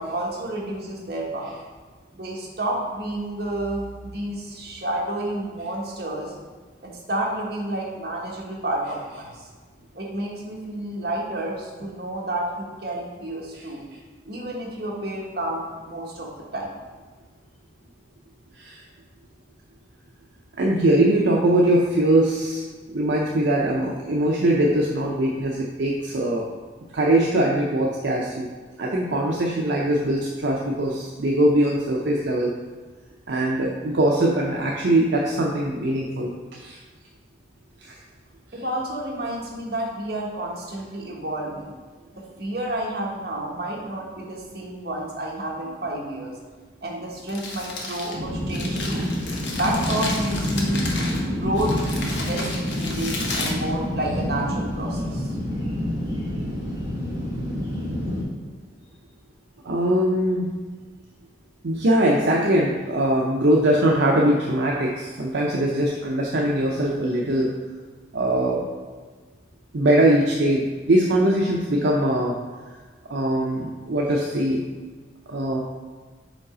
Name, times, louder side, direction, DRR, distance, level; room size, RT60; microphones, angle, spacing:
voice 1, 0.0-1.6 2.1-3.8 4.1-6.3 6.8-9.5 9.9-13.8 14.2-16.7 38.5-41.7 42.2-46.4 46.8-49.1 49.6-50.9 51.3-55.3, right 1 dB, 55° right, -3 dB, 1.2 m, -30 dB
voice 2, 20.6-26.5 26.9-28.5 28.8-32.5 33.3-36.8 37.8-37.9 59.6-60.5 61.6-67.5 68.1-68.6 69.7-72.4 73.1-74.6 75.3-75.6, right 1 dB, 70° right, -2 dB, 0.6 m, -21 dB
Crumpling crinkling, 47.1-54.4, left 2 dB, 75° left, 1.0 m, -33 dB
sound 1, 48.1-58.2, left 1 dB, 20° right, 1.3 m, -27 dB
5.2 x 4.0 x 4.9 m, 1.4 s
head